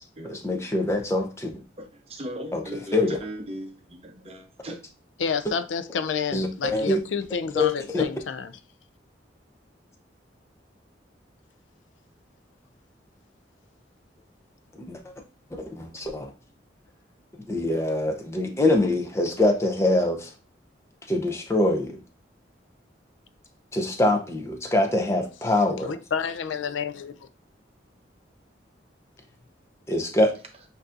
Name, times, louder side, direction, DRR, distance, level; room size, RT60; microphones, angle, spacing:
voice 1, 0.2-1.5 2.5-3.2 6.3-7.0 7.6-8.1 14.8-15.0 15.5-16.3 17.5-20.3 21.1-22.0 23.7-26.0 29.9-30.3, left 1 dB, 15° left, 0.6 m, -24 dB
voice 2, 1.8-4.8, equal, 30° right, 0.7 m, -38 dB
voice 3, 5.2-8.5 25.8-27.3, left 6 dB, 85° left, 0.4 m, -29 dB
7.7 x 2.7 x 2.5 m
head